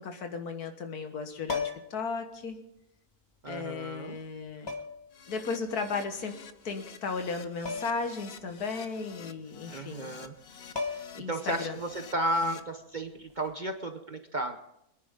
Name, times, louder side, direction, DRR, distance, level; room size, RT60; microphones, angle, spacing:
voice 1, 0.0-2.6 3.4-4.7 5.3-6.4 6.6-10.1 11.1-11.8 12.4-12.6, left 4 dB, 75° left, 6 dB, 1.9 m, -35 dB
sound 1, 1.5-2.1 3.4-3.5 4.7-5.1 7.7-8.1 8.4-8.5 10.3-10.4 10.8-11.3 13.3-13.5, left 4 dB, 20° left, 1.2 m, -35 dB
voice 2, 3.4-4.2 9.7-10.3 11.3-14.6, right 1 dB, 40° right, 6 dB, 0.8 m, -33 dB
Keyboard (musical), 5.1-12.6, left 6 dB, 50° left, 0.9 m, -49 dB
24.5 x 10.5 x 3.7 m, 0.83 s
omnidirectional pair, 1.6 m